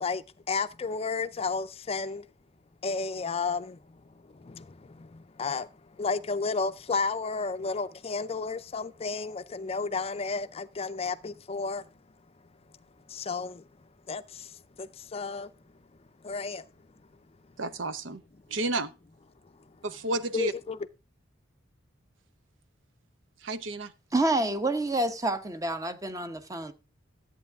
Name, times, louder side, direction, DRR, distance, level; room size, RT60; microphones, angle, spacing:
voice 1, 0.0-2.3 2.8-11.9 13.1-13.7 14.1-15.5 16.2-16.7 20.3-20.8, left 4 dB, 30° left, 0.5 m, -32 dB
voice 2, 17.6-18.2 18.5-18.9 19.8-20.5 23.4-23.9, right 2 dB, 80° right, 0.7 m, -31 dB
voice 3, 24.1-26.7, right 2 dB, 20° right, 0.9 m, -28 dB
13.5 x 8.2 x 3.5 m
head